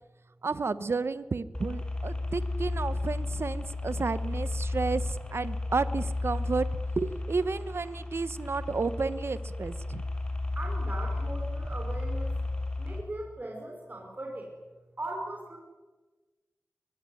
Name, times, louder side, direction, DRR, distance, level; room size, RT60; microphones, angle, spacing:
voice 1, 0.4-6.7 7.0-10.0, right 4 dB, 60° right, 14 dB, 1.1 m, -32 dB
sound 1, 1.5-13.0, left 2 dB, 20° left, 4.9 m, -33 dB
voice 2, 10.5-12.3 12.8-14.5 15.0-15.6, right 1 dB, 40° right, 0 dB, 5.6 m, -39 dB
23.5 x 21.5 x 9.7 m, 1.3 s
wide cardioid pair, 65°, 5 cm